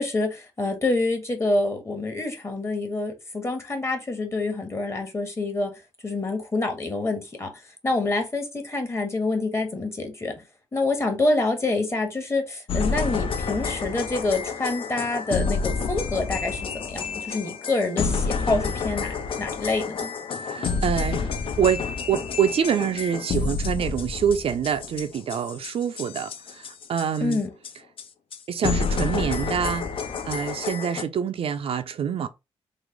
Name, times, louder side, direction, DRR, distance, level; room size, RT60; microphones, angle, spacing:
voice 1, 0.0-5.7 6.0-7.5 7.8-10.3 10.7-20.1 27.2-27.5, left 2 dB, 25° left, 1.1 m, -27 dB
sound 1, 12.7-27.4 27.6-27.7 28.0-28.1 28.3-28.4 28.6-31.0, left 5 dB, 55° left, 0.5 m, -29 dB
voice 2, 20.4-21.3 21.6-27.4 28.5-29.9 30.2-32.3, right 8 dB, 60° right, 0.4 m, -26 dB
3.1 x 2.0 x 3.6 m
cardioid pair, 90°, 11 cm